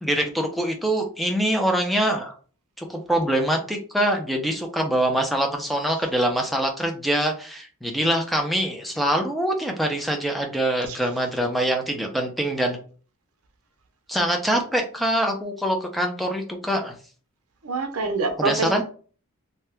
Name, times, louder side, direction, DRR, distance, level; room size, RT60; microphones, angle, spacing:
voice 1, 0.0-2.3 2.8-12.8 14.1-16.9 18.4-18.8, right 1 dB, ahead, 2 dB, 0.5 m, -24 dB
voice 2, 17.6-18.8, right 3 dB, 75° right, 7 dB, 0.6 m, -26 dB
2.8 x 2.3 x 3.3 m, 0.40 s
head